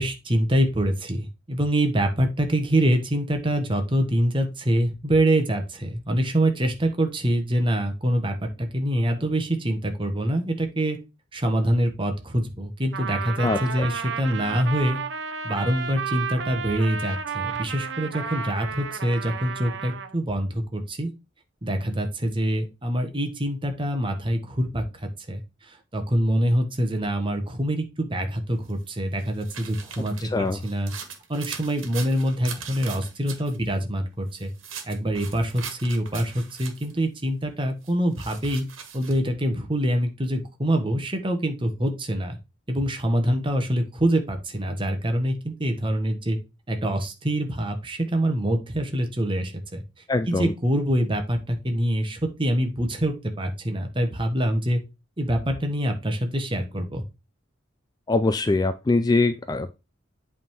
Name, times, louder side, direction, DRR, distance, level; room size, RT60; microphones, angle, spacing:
voice 1, 0.0-11.0 11.3-15.0 15.4-21.1 21.6-25.4 25.9-30.9 31.3-34.5 34.9-38.7 38.9-42.3 42.7-46.4 46.7-49.8 50.3-54.8 55.2-57.0, right 1 dB, 25° right, 5 dB, 1.2 m, -25 dB
Trumpet, 12.9-20.1, right 6 dB, 65° right, 0.7 m, -32 dB
voice 2, 13.4-13.9 30.3-30.6 50.1-50.5 58.1-59.7, left 3 dB, 20° left, 10 dB, 0.3 m, -23 dB
sound 1, 28.7-33.6 34.3-37.0 37.8-39.2, right 7 dB, 90° right, 1.5 m, -40 dB
8.3 x 3.6 x 4.6 m, 0.27 s
head